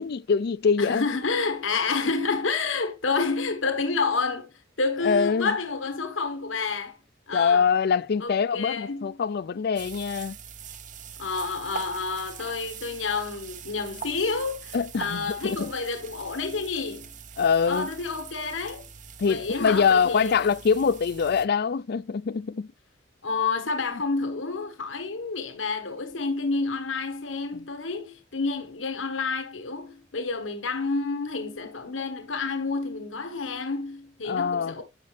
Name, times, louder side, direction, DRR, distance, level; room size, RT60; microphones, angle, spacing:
voice 1, 0.0-1.1 5.0-5.5 7.3-10.4 14.7-15.7 17.4-17.9 19.2-22.7 34.3-34.8, left 6 dB, 55° left, 0.4 m, -24 dB
voice 2, 0.8-7.0 7.3-7.7 8.2-9.2 11.2-17.2 17.7-18.9 19.3-20.5 23.2-34.8, left 4 dB, 85° left, 1.4 m, -29 dB
sound 1, 9.8-21.5, right 7 dB, 40° right, 0.7 m, -43 dB
10.5 x 6.7 x 3.2 m
head